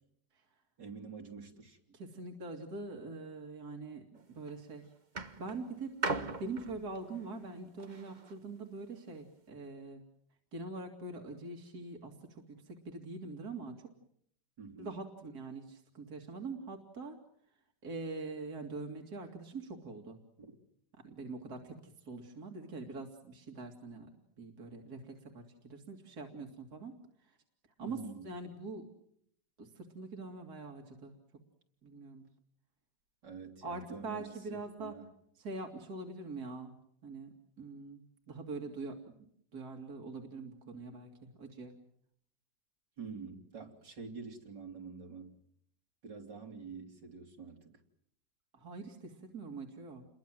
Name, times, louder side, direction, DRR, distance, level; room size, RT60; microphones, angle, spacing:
voice 1, 0.8-1.8 14.6-15.0 20.4-20.6 27.8-28.3 33.2-35.1 43.0-45.4 46.0-47.7, right 5 dB, 80° right, 2 dB, 4.0 m, -47 dB
voice 2, 1.9-4.0 4.3-4.8 5.4-5.9 6.4-10.0 10.5-13.9 14.8-17.2 17.8-20.2 21.0-21.8 22.1-24.1 24.4-26.9 27.8-28.9 29.6-31.1 31.8-32.2 33.6-35.0 35.4-36.7 37.0-39.0 39.5-41.7 48.5-50.1, right 3 dB, 60° right, 3 dB, 3.1 m, -43 dB
sound 1, 4.1-4.5 5.2-8.4 9.2-9.3, right 3 dB, 30° right, 1.3 m, -39 dB
30.0 x 22.5 x 7.7 m, 0.69 s
omnidirectional pair, 1.9 m